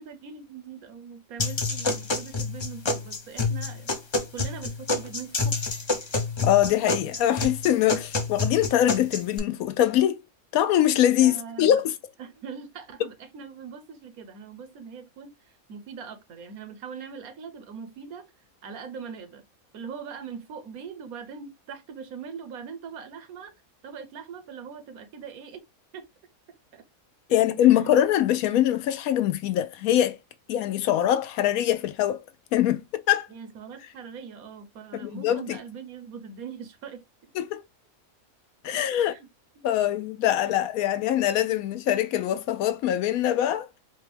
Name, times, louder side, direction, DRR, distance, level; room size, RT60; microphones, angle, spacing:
voice 1, 0.0-3.9 4.3-5.6 11.2-11.8 12.2-15.3 15.7-18.3 18.6-19.4 19.7-23.5 23.8-25.6 25.9-26.1 26.7-26.8 27.6-27.7 28.2-28.3 33.3-37.3 38.7-39.3, right 6 dB, 85° right, 1.3 m, -41 dB
sound 1, 1.4-9.4, left 3 dB, 40° left, 0.4 m, -28 dB
voice 2, 6.4-10.2 10.5-11.9 27.3-30.2 30.5-32.2 32.5-33.3 35.0-35.6 37.4-37.6 38.6-39.1 39.6-43.7, left 11 dB, 80° left, 1.0 m, -23 dB
4.4 x 2.2 x 3.3 m
omnidirectional pair, 1.5 m